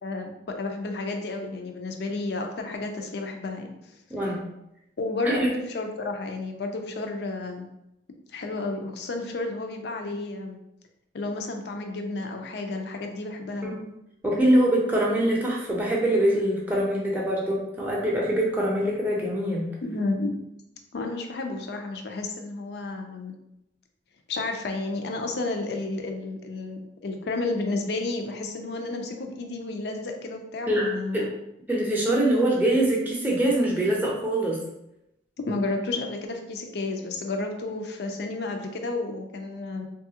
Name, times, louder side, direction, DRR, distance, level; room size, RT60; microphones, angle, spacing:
voice 1, 0.0-3.7 5.0-7.7 8.3-10.6 11.1-13.7 19.8-20.3 20.9-23.3 24.3-31.3 35.4-39.9, left 2 dB, 60° left, 4 dB, 0.4 m, -31 dB
voice 2, 4.1-4.4 5.2-5.5 13.8-13.9 14.2-19.7 30.7-30.9 31.1-31.2 31.7-34.6, right 1 dB, 10° right, -4 dB, 0.6 m, -23 dB
3.2 x 2.3 x 2.8 m, 0.84 s
head